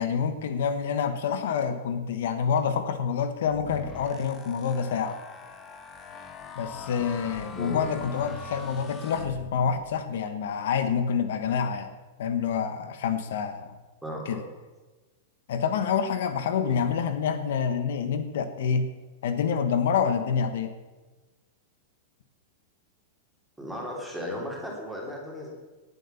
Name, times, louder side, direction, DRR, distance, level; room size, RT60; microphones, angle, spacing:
voice 1, 0.0-5.2 6.5-11.9 12.2-13.8 14.2-14.4 15.5-18.9 19.2-20.7, left 7 dB, 70° left, 9 dB, 1.3 m, -27 dB
sound 1, 3.4-9.9, left 5 dB, 20° left, 1.2 m, -43 dB
voice 2, 14.0-14.4 16.7-16.8 23.6-25.5, equal, ahead, -2 dB, 3.4 m, -35 dB
19.0 x 8.1 x 7.1 m, 1.2 s
supercardioid pair, 165°, 0 cm